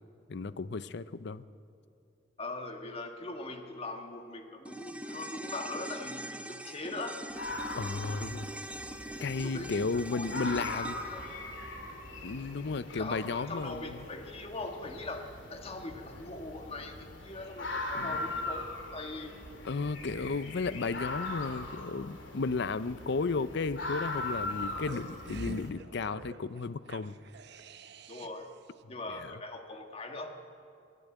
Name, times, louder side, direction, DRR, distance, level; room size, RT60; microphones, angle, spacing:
voice 1, 0.3-1.4 7.7-8.5 9.2-11.0 12.2-14.0 17.9-18.2 19.6-27.2 29.1-29.3, left 4 dB, 65° left, 15 dB, 0.6 m, -34 dB
voice 2, 2.4-7.2 9.4-10.6 10.9-11.2 12.9-18.6 18.9-19.4 28.1-28.5 28.9-30.3, left 2 dB, 35° left, 4 dB, 1.6 m, -41 dB
sound 1, 4.7-13.1 13.4-13.5, right 1 dB, 5° right, 0.7 m, -43 dB
sound 2, 7.3-25.7, left 2 dB, 90° left, 2.5 m, -41 dB
sound 3, 24.1-28.5 28.8-28.9, right 3 dB, 65° right, 0.8 m, -47 dB
26.5 x 11.0 x 9.1 m, 2.5 s
head